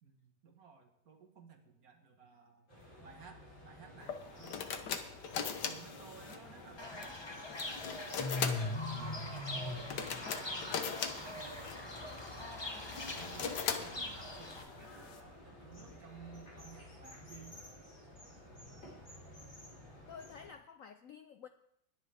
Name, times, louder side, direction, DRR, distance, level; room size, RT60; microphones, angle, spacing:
voice 1, 0.0-2.7 3.0-4.9 5.6-7.2 7.7-8.0 8.4-10.8 11.1-12.8 13.1-17.7, right 6 dB, 50° right, 4 dB, 1.9 m, -57 dB
sound 1, 2.7-20.5, left 1 dB, 40° left, 4.9 m, -53 dB
sound 2, 4.0-15.2, left 7 dB, 60° left, 1.5 m, -41 dB
Fowl / Bird, 6.8-14.6, left 2 dB, 20° left, 0.9 m, -41 dB
voice 2, 20.1-21.5, left 7 dB, 85° left, 8 dB, 0.7 m, -51 dB
20.5 x 9.1 x 3.5 m, 0.74 s
omnidirectional pair, 2.2 m